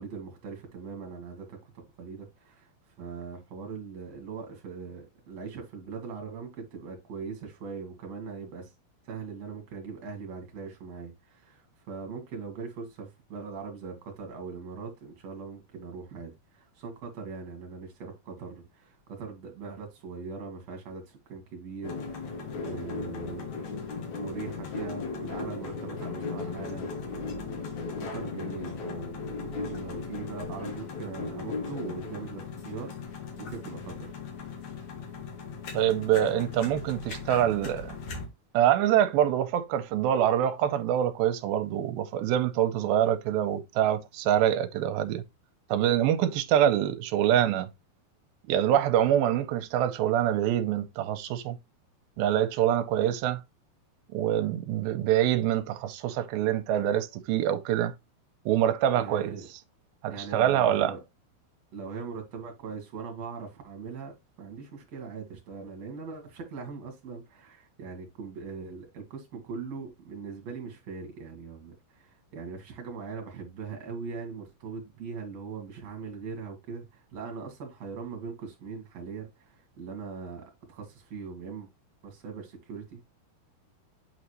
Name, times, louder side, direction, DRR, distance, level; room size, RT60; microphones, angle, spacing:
voice 1, 0.0-1.6 2.0-2.7 3.0-8.7 9.1-23.5 23.9-34.1 59.0-59.5 60.1-61.0 61.7-81.7 82.0-83.1, right 5 dB, 50° right, 2.5 m, -41 dB
sound 1, 21.8-38.3, left 4 dB, 60° left, 2.5 m, -37 dB
voice 2, 35.7-37.9 38.5-45.2 45.7-47.7 48.5-51.6 52.2-53.4 54.1-57.9 58.5-59.3 60.0-60.9, right 11 dB, 80° right, 2.4 m, -25 dB
8.6 x 4.0 x 3.2 m
omnidirectional pair, 4.5 m